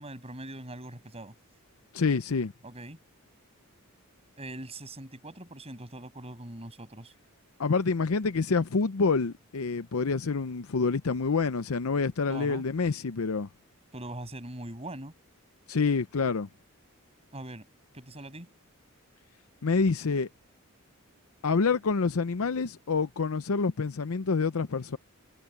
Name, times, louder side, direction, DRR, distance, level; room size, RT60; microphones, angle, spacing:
voice 1, 0.0-1.3 2.6-3.0 4.4-7.1 12.3-12.6 13.9-15.1 17.3-17.7 17.9-18.5, right 1 dB, 30° right, 7.5 m, -41 dB
voice 2, 1.9-2.5 7.6-13.5 15.7-16.5 19.6-20.3 21.4-25.0, left 4 dB, 75° left, 0.6 m, -27 dB
head